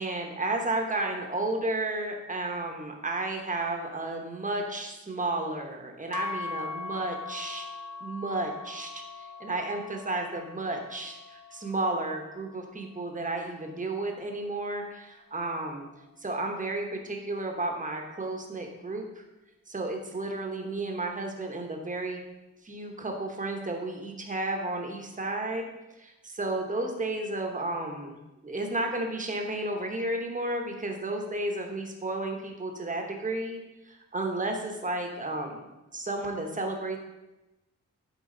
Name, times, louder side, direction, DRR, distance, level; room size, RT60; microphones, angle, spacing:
voice 1, 0.0-7.7 8.0-8.9 9.2-15.9 16.2-19.2 19.7-22.2 22.6-25.7 26.0-28.2 28.4-37.0, right 2 dB, 25° right, 2 dB, 1.0 m, -32 dB
sound 1, 6.1-14.4, left 4 dB, 75° left, 0.7 m, -41 dB
11.5 x 4.9 x 3.8 m, 1.0 s
wide cardioid pair, 175°, 30 cm